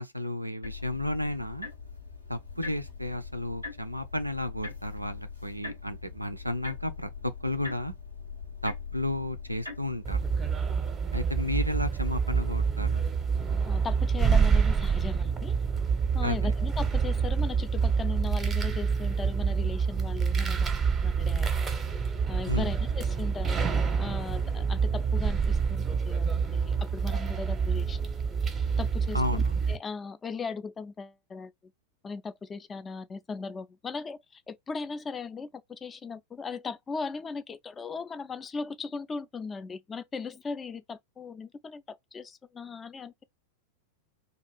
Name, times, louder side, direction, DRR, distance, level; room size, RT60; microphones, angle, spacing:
voice 1, 0.0-1.7 2.3-7.9 8.6-10.2 11.1-13.0 16.2-16.4 22.5-22.7 29.1-29.5, left 1 dB, 85° right, 0.3 m, -32 dB
sound 1, 0.6-10.5, left 5 dB, 90° left, 0.8 m, -42 dB
sound 2, 10.0-29.8, right 6 dB, 20° right, 0.6 m, -27 dB
voice 2, 13.7-15.5 16.1-21.8 22.3-23.6 24.0-28.0 28.3-31.5 32.0-43.2, left 4 dB, 20° left, 0.3 m, -38 dB
2.4 x 2.3 x 3.1 m
figure-of-eight pair, 90°, 0 cm